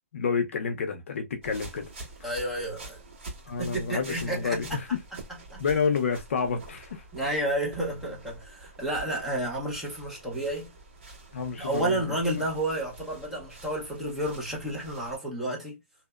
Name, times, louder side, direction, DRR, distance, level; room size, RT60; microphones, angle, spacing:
voice 1, 0.1-1.9 2.2-2.3 3.5-5.0 5.6-7.0 11.3-12.0, left 5 dB, 60° left, 0.5 m, -29 dB
sound 1, 1.4-15.2, right 2 dB, 45° right, 1.5 m, -47 dB
voice 2, 2.2-3.0 3.6-4.6 5.5-5.6 7.1-10.7 11.6-15.8, right 1 dB, ahead, 0.5 m, -31 dB
2.7 x 2.0 x 2.3 m
hypercardioid pair, 175°, 8 cm